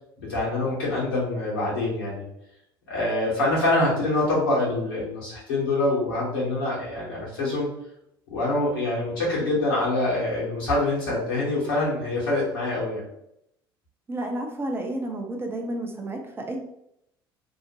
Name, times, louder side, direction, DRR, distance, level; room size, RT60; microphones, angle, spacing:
voice 1, 0.2-2.3 2.9-7.7 8.3-13.0, left 2 dB, 70° left, -6 dB, 1.1 m, -25 dB
voice 2, 14.1-16.6, right 1 dB, 20° right, 2 dB, 0.6 m, -31 dB
2.7 x 2.1 x 2.8 m, 0.77 s
figure-of-eight pair, 60°, 12 cm